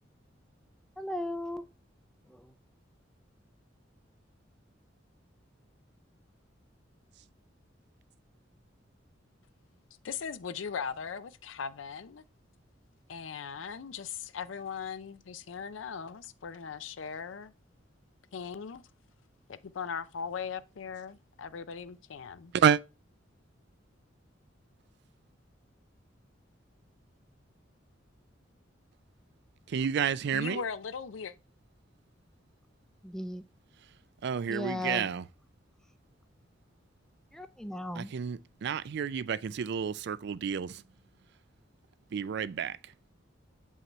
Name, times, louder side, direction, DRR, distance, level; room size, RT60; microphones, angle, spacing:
voice 1, 1.0-1.7 2.3-2.5 33.0-33.4 34.5-35.1 37.3-38.1, left 1 dB, 5° left, 0.4 m, -36 dB
voice 2, 10.0-12.2 13.1-17.5 18.3-18.8 19.5-22.5 30.3-31.3, left 6 dB, 85° left, 0.5 m, -39 dB
voice 3, 29.7-30.6 34.2-35.2 38.0-40.8 42.1-42.8, right 7 dB, 60° right, 0.4 m, -30 dB
7.3 x 5.5 x 3.1 m
head